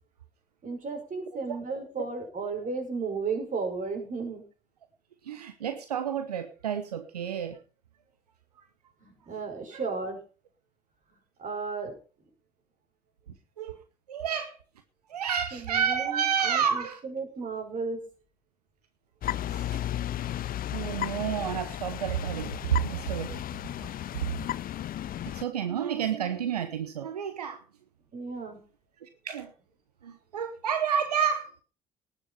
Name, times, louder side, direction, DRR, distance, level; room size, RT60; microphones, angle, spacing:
voice 1, 0.6-4.4 9.0-10.2 11.4-11.9 15.5-18.0 23.3-23.4 24.0-24.1 28.1-28.6, right 4 dB, 40° right, 4 dB, 5.5 m, -34 dB
voice 2, 5.2-7.6 9.7-9.8 13.6-13.8 14.1-14.6 15.1-17.0 19.5-19.8 20.7-23.3 25.2-27.6 29.0-29.5 30.0-31.6, right 8 dB, 85° right, 9 dB, 0.9 m, -30 dB
sound 1, 19.2-25.4, left 12 dB, 45° left, 0.7 m, -34 dB
18.5 x 7.5 x 5.6 m, 0.36 s
figure-of-eight pair, 50°, 20 cm